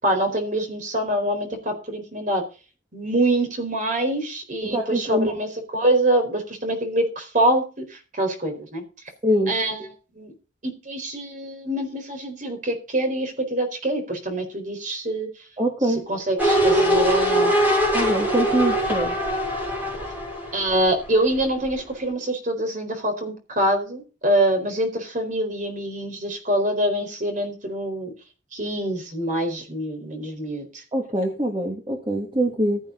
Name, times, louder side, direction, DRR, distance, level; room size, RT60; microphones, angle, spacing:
voice 1, 0.0-2.4 2.9-8.8 9.5-9.8 10.2-10.3 10.6-15.3 16.1-17.5 20.5-28.1 28.5-30.8, right 1 dB, 45° right, 5 dB, 4.2 m, -25 dB
voice 2, 4.6-5.3 9.2-9.5 15.6-16.1 17.9-19.2 30.9-32.9, equal, 30° right, 1 dB, 2.4 m, -23 dB
sound 1, 16.4-21.4 21.7-21.8, equal, 10° right, 6.4 m, -22 dB
15.5 x 8.9 x 4.0 m, 0.33 s
head